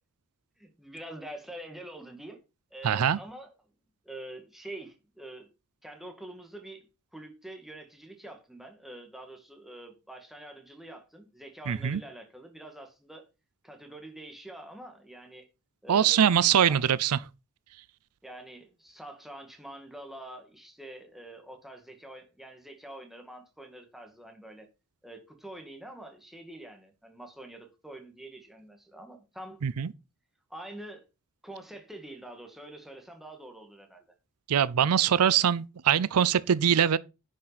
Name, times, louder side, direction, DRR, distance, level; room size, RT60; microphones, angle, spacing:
voice 1, 0.6-2.4 2.7-3.5 4.0-5.5 5.8-6.9 7.1-13.3 13.6-15.5 15.8-16.3 16.7-16.8 18.2-24.7 25.0-29.6 30.5-31.1 31.4-34.1, right 1 dB, ahead, 1.9 m, -45 dB
voice 2, 2.8-3.2 11.7-12.0 15.9-17.2 29.6-29.9 34.5-37.0, right 8 dB, 85° right, 0.5 m, -23 dB
10.0 x 6.2 x 4.2 m
head